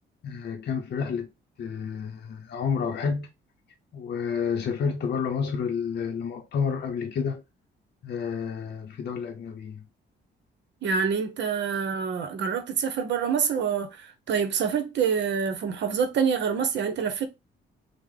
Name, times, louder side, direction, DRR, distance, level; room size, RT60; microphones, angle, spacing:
voice 1, 0.2-1.3 1.6-3.3 3.9-7.4 8.0-9.8, left 6 dB, 55° left, 0.6 m, -30 dB
voice 2, 10.8-17.3, right 6 dB, 65° right, 0.8 m, -26 dB
3.1 x 2.1 x 3.6 m
cardioid pair, 90°, 20 cm